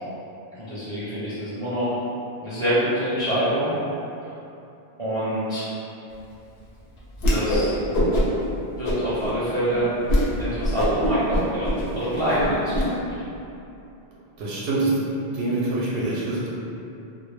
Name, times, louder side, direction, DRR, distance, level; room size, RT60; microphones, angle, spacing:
voice 1, 0.6-1.9 2.4-3.7 5.0-5.7 7.3-7.8 8.8-9.9 10.3-13.0, equal, 45° right, -13 dB, 0.5 m, -26 dB
Whoosh swoosh swish, 7.2-7.7 7.9-8.5 8.8-9.3 9.7-9.8 10.1-10.3 10.6-12.8, equal, 70° left, 0.7 m, -22 dB
voice 2, 14.4-15.0 15.3-16.5, right 2 dB, 85° right, -6 dB, 0.8 m, -25 dB
2.1 x 2.0 x 3.1 m, 2.8 s
omnidirectional pair, 1.0 m